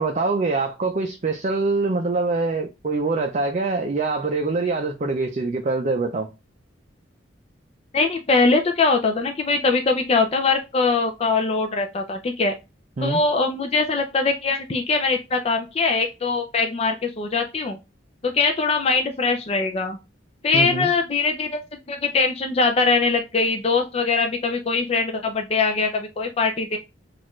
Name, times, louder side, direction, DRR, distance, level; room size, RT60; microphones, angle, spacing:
voice 1, 0.0-6.3 13.0-13.2 20.5-20.9, right 3 dB, 40° right, 0.5 m, -24 dB
voice 2, 7.9-12.5 13.0-17.8 18.2-20.0 20.4-21.6 21.9-26.8, left 4 dB, 35° left, 0.4 m, -22 dB
6.1 x 2.5 x 3.1 m
head